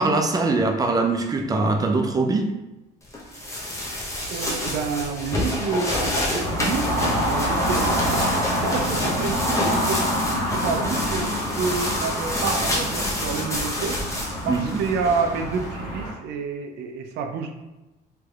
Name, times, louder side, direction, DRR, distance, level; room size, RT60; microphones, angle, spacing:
voice 1, 0.0-2.5 14.5-14.8, right 3 dB, 20° right, 4 dB, 0.4 m, -22 dB
sound 1, 3.1-15.6, left 1 dB, 20° left, 0.8 m, -29 dB
voice 2, 4.3-6.9 7.3-10.1 10.4-14.0 14.4-17.5, right 5 dB, 80° right, 5 dB, 0.4 m, -29 dB
sound 2, 6.4-16.1, equal, 75° left, 1.2 m, -26 dB
3.3 x 2.9 x 2.3 m, 1.0 s
cardioid pair, 110°, 17 cm